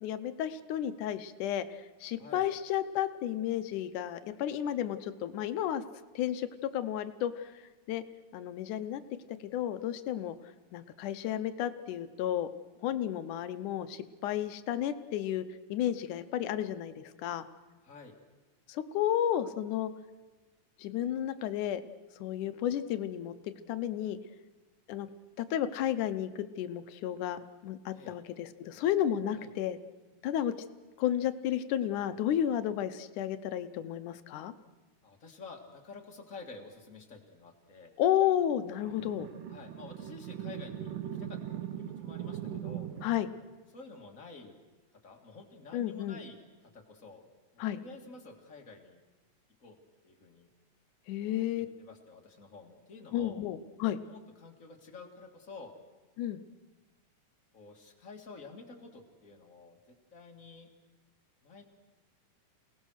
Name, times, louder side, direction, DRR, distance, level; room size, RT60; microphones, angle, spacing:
voice 1, 0.0-5.8 6.2-6.5 6.7-7.6 7.9-8.0 8.3-9.0 9.4-10.4 10.7-12.5 12.8-17.5 18.7-19.9 20.8-21.8 22.2-23.4 23.7-24.2 24.9-25.1 25.4-29.8 30.2-30.5 31.0-34.5 38.0-39.3 43.0-43.3 45.7-46.2 47.6-47.8 51.1-51.7 53.1-54.0 56.2-56.4, left 11 dB, 75° left, 11 dB, 2.2 m, -32 dB
voice 2, 17.8-18.1 27.9-28.2 29.4-29.5 35.0-37.9 39.5-40.9 41.2-41.4 41.8-42.9 43.7-44.6 45.0-46.4 46.6-47.2 47.7-49.0 49.6-49.8 50.0-50.5 51.2-53.4 54.1-55.7 57.5-59.8 60.1-60.7 61.4-61.6, left 4 dB, 30° left, 2 dB, 2.0 m, -50 dB
sound 1, 38.8-43.2, right 10 dB, 80° right, 2.7 m, -40 dB
28.0 x 18.5 x 6.4 m, 1.2 s
omnidirectional pair, 3.7 m